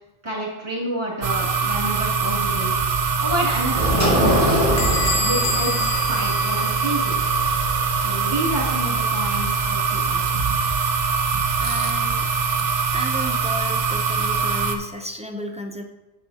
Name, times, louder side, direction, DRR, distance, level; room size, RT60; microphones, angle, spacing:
voice 1, 0.2-2.7 3.2-4.8 5.1-7.1 7.9-10.2, right 1 dB, 30° right, -5 dB, 2.5 m, -29 dB
sound 1, 1.2-14.8, right 5 dB, 65° right, 0.9 m, -23 dB
sound 2, 3.7-9.0, left 1 dB, 35° left, 1.4 m, -23 dB
Bell / Squeak, 4.8-7.3, left 3 dB, 85° left, 1.1 m, -29 dB
voice 2, 11.6-12.3 12.9-15.8, equal, 10° right, 3 dB, 0.4 m, -33 dB
9.1 x 6.8 x 2.8 m, 1.0 s
omnidirectional pair, 1.0 m